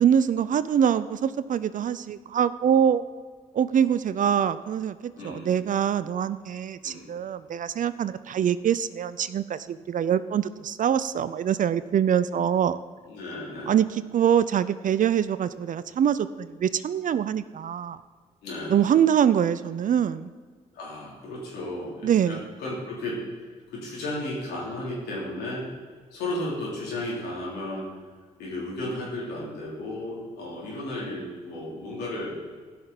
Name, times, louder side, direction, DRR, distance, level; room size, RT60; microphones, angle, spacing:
voice 1, 0.0-3.0 3.5-5.0 5.2-12.8 13.7-18.0 18.7-20.3 22.0-22.4, right 9 dB, 50° right, 15 dB, 0.5 m, -24 dB
voice 2, 5.2-5.6 6.8-7.1 13.1-13.7 18.4-18.8 20.7-23.2 23.7-25.6 26.1-27.9 28.4-32.4, left 1 dB, 75° left, -5 dB, 3.2 m, -34 dB
15.5 x 6.1 x 4.0 m, 1.5 s
hypercardioid pair, 45°, 17 cm